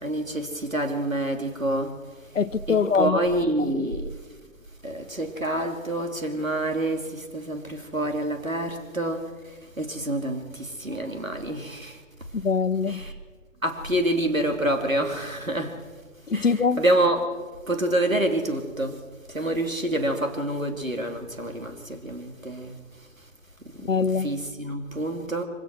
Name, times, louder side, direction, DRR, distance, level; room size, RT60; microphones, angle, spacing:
voice 1, 0.0-1.9 2.7-4.1 4.8-9.2 9.8-11.9 12.9-13.1 13.6-15.7 16.3-17.3 17.7-19.0 19.3-22.7 24.2-25.4, right 1 dB, 90° right, 3.1 m, -27 dB
voice 2, 2.3-3.2 12.4-13.0 16.3-16.8 23.9-24.3, left 5 dB, 70° left, 1.0 m, -23 dB
24.5 x 17.0 x 6.3 m
figure-of-eight pair, 130°, 39 cm